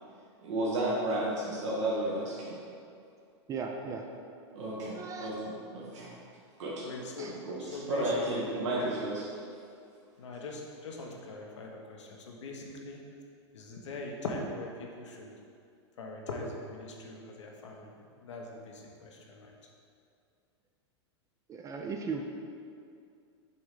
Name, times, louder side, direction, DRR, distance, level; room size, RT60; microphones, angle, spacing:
voice 1, 0.4-2.5 4.5-5.4 5.7-6.1 6.6-6.9 7.2-7.6 7.9-9.2, right 1 dB, 80° right, -6 dB, 1.4 m, -32 dB
voice 2, 3.5-4.1 4.9-5.3 7.2-7.3 21.5-22.3, right 5 dB, 20° right, 3 dB, 0.4 m, -37 dB
voice 3, 6.8-8.5 8.7-8.9 10.2-13.0 13.5-15.3 16.0-17.9 18.2-19.6, left 2 dB, 85° left, 0 dB, 1.1 m, -41 dB
7.0 x 3.1 x 5.0 m, 2.4 s
hypercardioid pair, 125°, 15 cm